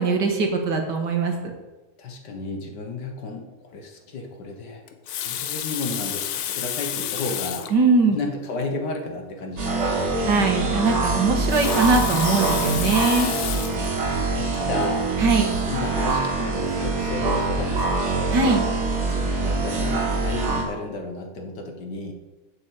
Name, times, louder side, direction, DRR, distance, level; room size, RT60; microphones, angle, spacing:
voice 1, 0.0-1.3 7.7-8.2 10.3-13.3 15.2-15.5 18.3-18.6, right 3 dB, 60° right, 3 dB, 2.1 m, -21 dB
voice 2, 2.0-4.8 5.2-7.7 8.1-10.1 13.4-15.1 15.7-18.4 19.1-22.1, left 3 dB, 60° left, 4 dB, 1.8 m, -33 dB
Water tap faucet, 4.9-7.8 8.6-8.7 9.0-9.1 11.3-13.9 14.5-14.7, left 10 dB, 85° left, 1.7 m, -30 dB
sound 1, 9.6-20.6, right 3 dB, 75° right, 3.0 m, -24 dB
7.7 x 7.0 x 8.3 m, 1.1 s
omnidirectional pair, 2.2 m